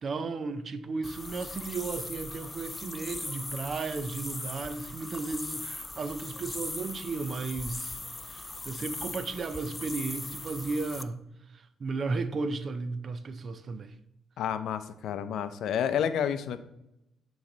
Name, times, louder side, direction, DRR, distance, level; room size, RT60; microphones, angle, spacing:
voice 1, 0.0-8.0 8.3-11.2 11.5-13.9, right 4 dB, 45° right, 0.5 m, -34 dB
sound 1, 1.0-11.0, left 2 dB, 20° left, 0.4 m, -39 dB
voice 2, 14.4-16.6, left 8 dB, 75° left, 0.5 m, -30 dB
8.6 x 3.1 x 3.8 m
cardioid pair, 90°, 0 cm